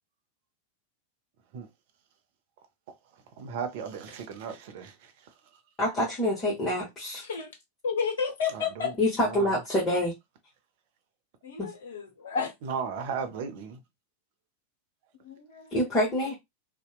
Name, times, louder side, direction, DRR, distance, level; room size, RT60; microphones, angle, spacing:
voice 1, 3.4-5.1 8.5-8.9 9.3-9.5 12.6-13.8, right 6 dB, 50° right, 0.5 m, -35 dB
voice 2, 5.8-7.2 9.0-10.1 11.6-11.7 15.7-16.3, left 1 dB, 20° left, 1.0 m, -26 dB
voice 3, 7.8-8.9 11.4-12.5 15.2-15.7, left 6 dB, 60° left, 0.6 m, -31 dB
2.7 x 2.1 x 2.3 m
figure-of-eight pair, 90°, 0 cm